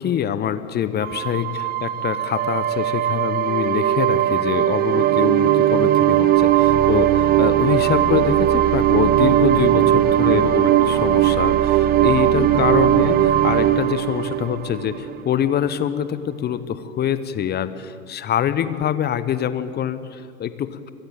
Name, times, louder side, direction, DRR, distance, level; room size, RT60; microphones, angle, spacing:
voice 1, 0.0-20.9, left 9 dB, 25° left, 14 dB, 1.0 m, -25 dB
sound 1, 1.0-15.4, right 12 dB, 20° right, 0.7 m, -18 dB
22.0 x 14.0 x 9.1 m, 2.3 s
figure-of-eight pair, 85°, 42 cm